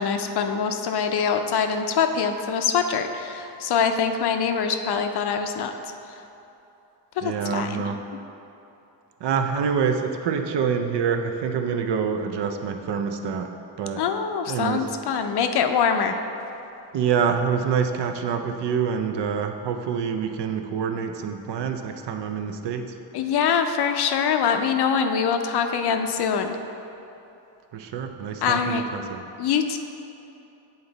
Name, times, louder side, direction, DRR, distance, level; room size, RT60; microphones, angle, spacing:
voice 1, 0.0-5.7 7.2-7.7 14.0-16.2 23.1-26.6 28.4-28.8 29.4-29.8, left 6 dB, 60° left, 6 dB, 0.5 m, -24 dB
voice 2, 7.2-8.0 9.2-14.0 14.5-14.9 16.9-23.0 27.7-29.2, right 6 dB, 65° right, 6 dB, 0.6 m, -26 dB
8.7 x 4.0 x 3.9 m, 2.9 s
cardioid pair, 120°, 45 cm